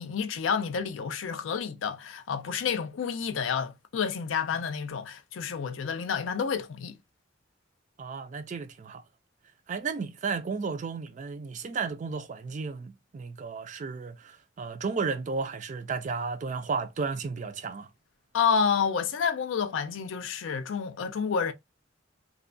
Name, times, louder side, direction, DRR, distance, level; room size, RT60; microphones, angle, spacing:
voice 1, 0.0-7.0 18.3-21.5, left 6 dB, 85° left, 0.4 m, -29 dB
voice 2, 8.0-9.0 9.7-17.9, right 5 dB, 40° right, 0.3 m, -33 dB
2.6 x 2.1 x 2.5 m
head